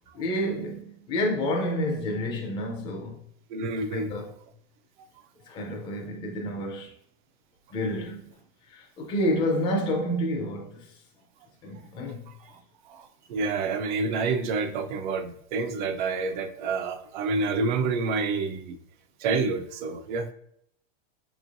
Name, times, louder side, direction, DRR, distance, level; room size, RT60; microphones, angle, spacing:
voice 1, 0.1-3.2 3.9-4.3 5.5-6.9 7.7-8.4 8.7-11.0 11.6-12.3, equal, 15° left, 0.5 m, -29 dB
voice 2, 3.5-4.1 12.8-18.8 19.2-20.3, right 4 dB, 55° right, 0.5 m, -28 dB
5.1 x 3.1 x 2.5 m
supercardioid pair, 165°, 29 cm